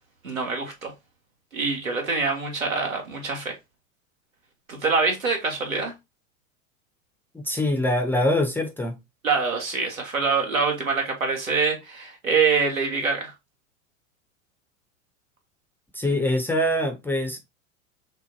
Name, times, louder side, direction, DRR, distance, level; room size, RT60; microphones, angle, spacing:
voice 1, 0.2-0.9 1.5-3.5 4.7-5.9 9.2-13.3, right 4 dB, 80° right, 1.6 m, -25 dB
voice 2, 7.3-9.0 15.9-17.4, left 1 dB, 5° left, 0.5 m, -24 dB
6.1 x 2.2 x 2.6 m
figure-of-eight pair, 85°, 40 cm